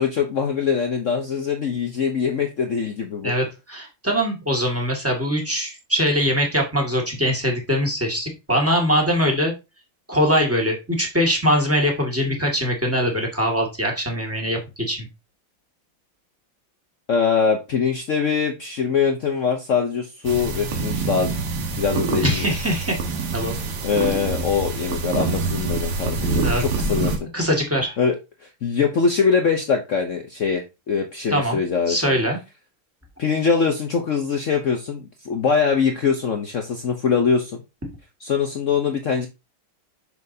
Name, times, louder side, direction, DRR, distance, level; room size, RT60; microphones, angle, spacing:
voice 1, 0.0-3.3 17.1-21.4 21.8-22.5 23.8-27.1 28.0-28.1 28.6-32.2 33.2-37.6 38.2-39.3, left 6 dB, 80° left, 4 dB, 0.6 m, -23 dB
voice 2, 3.2-9.5 10.1-15.0 22.2-23.0 23.3-23.5 26.3-26.7 27.3-27.9 31.3-31.6 31.9-32.4, equal, 5° right, 0 dB, 1.6 m, -22 dB
sound 1, 20.2-27.2, right 4 dB, 80° right, 2.2 m, -26 dB
7.2 x 6.2 x 2.7 m, 0.26 s
omnidirectional pair, 2.4 m